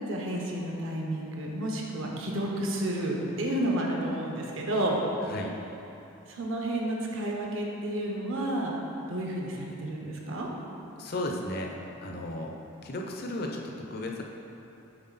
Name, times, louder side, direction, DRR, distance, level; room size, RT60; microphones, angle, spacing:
voice 1, 0.0-5.0 6.3-8.7 9.1-10.5, right 1 dB, 60° right, -1 dB, 0.9 m, -31 dB
voice 2, 11.0-11.7 12.0-12.5 12.8-13.6 13.9-14.2, left 1 dB, 45° left, 1 dB, 0.6 m, -34 dB
7.7 x 4.7 x 4.0 m, 2.9 s
head